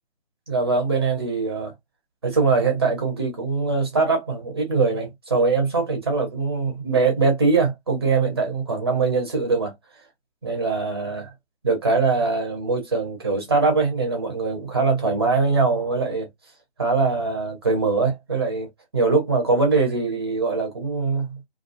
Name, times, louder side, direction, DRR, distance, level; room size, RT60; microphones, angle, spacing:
voice 1, 0.5-1.7 2.2-9.7 10.4-11.3 11.6-16.3 16.8-21.4, right 4 dB, 20° right, 0.7 m, -22 dB
2.4 x 2.2 x 2.5 m
figure-of-eight pair, 155°, 34 cm